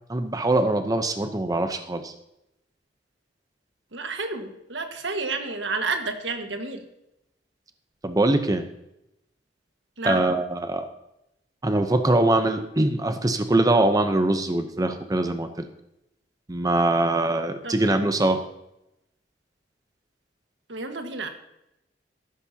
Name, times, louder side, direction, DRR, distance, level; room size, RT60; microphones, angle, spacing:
voice 1, 0.1-2.1 8.0-8.6 10.0-10.9 11.6-15.7 16.5-18.4, right 2 dB, 20° right, 7 dB, 0.7 m, -22 dB
voice 2, 3.9-6.8 10.0-10.2 17.6-17.8 20.7-21.3, right 3 dB, 90° right, 5 dB, 1.6 m, -30 dB
15.0 x 12.5 x 2.8 m, 0.86 s
head